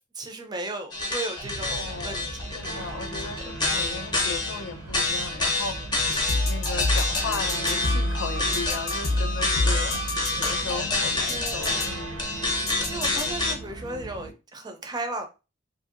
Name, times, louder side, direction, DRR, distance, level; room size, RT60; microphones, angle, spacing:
voice 1, 0.1-3.0 3.3-3.5 11.3-11.9 12.3-12.5 12.9-15.3, right 2 dB, 20° right, 0.4 m, -36 dB
sound 1, 0.9-13.5, left 3 dB, 20° left, 0.7 m, -28 dB
sound 2, 1.4-14.3, right 2 dB, 80° right, 0.6 m, -39 dB
voice 2, 1.6-6.0 6.4-10.0 10.4-12.2, left 5 dB, 65° left, 0.4 m, -36 dB
sound 3, 6.1-10.9 11.3-11.9 12.7-13.2, left 1 dB, 85° left, 0.8 m, -28 dB
2.7 x 2.7 x 2.4 m
head